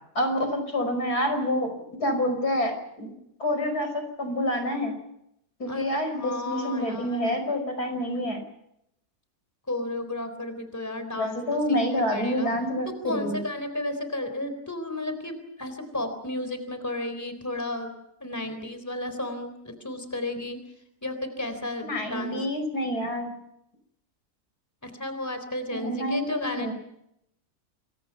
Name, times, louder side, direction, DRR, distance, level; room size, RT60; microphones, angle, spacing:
voice 1, 0.1-1.7 2.0-3.1 3.4-4.9 5.6-8.4 11.2-13.4 21.8-23.3 25.7-26.7, left 1 dB, 75° left, 6 dB, 6.0 m, -27 dB
voice 2, 5.7-7.4 9.7-11.8 12.1-12.5 12.9-17.9 18.2-20.6 21.0-22.4 24.8-26.7, left 1 dB, 10° left, 8 dB, 3.8 m, -33 dB
28.0 x 23.0 x 5.8 m, 0.78 s
omnidirectional pair, 1.7 m